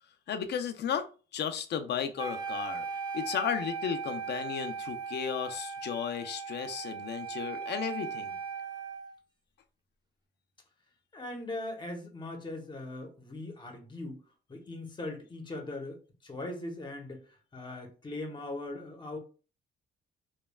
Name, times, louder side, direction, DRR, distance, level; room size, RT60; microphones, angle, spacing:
voice 1, 0.3-1.1 1.3-2.8 3.1-8.4, left 8 dB, 60° left, 8 dB, 0.5 m, -34 dB
Wind instrument woodwind instrument, 2.2-9.1, right 5 dB, 20° right, 0.5 m, -38 dB
voice 2, 11.1-14.2 14.5-19.2, left 2 dB, 25° left, 3 dB, 0.9 m, -40 dB
3.1 x 2.2 x 2.2 m, 0.35 s
cardioid pair, 90°, 20 cm